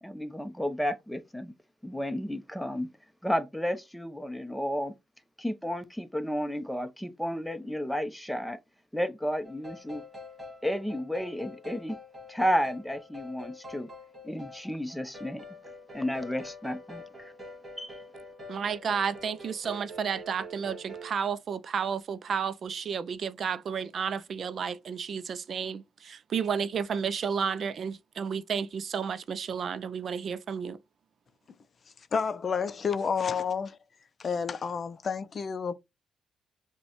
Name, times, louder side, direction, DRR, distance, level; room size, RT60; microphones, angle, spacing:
voice 1, 0.0-1.5 1.8-2.9 3.2-4.9 5.4-8.6 8.9-10.0 10.6-12.0 12.3-13.9 14.2-15.4 15.9-17.3 17.8-18.0, equal, ahead, 0.6 m, -32 dB
sound 1, 9.4-21.1, left 1 dB, 25° right, 1.9 m, -46 dB
voice 2, 18.5-30.8, right 6 dB, 55° right, 0.3 m, -32 dB
voice 3, 32.1-33.8 34.2-35.7, left 6 dB, 45° left, 0.4 m, -30 dB
5.2 x 2.1 x 2.9 m
cardioid pair, 90°, 0 cm